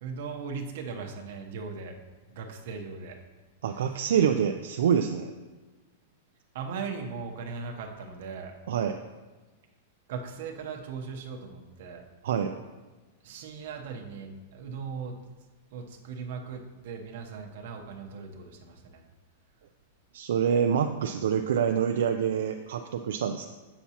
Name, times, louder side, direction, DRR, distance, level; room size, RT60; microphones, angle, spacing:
voice 1, 0.0-2.0 2.3-3.2 3.7-3.9 6.5-8.5 10.1-12.0 13.2-15.2 15.7-19.0, right 5 dB, 55° right, 3 dB, 0.8 m, -38 dB
voice 2, 3.6-5.3 8.7-9.0 12.2-12.5 20.1-23.5, right 8 dB, 75° right, 6 dB, 0.3 m, -26 dB
8.1 x 5.9 x 2.8 m, 1.2 s
supercardioid pair, 175°, 0 cm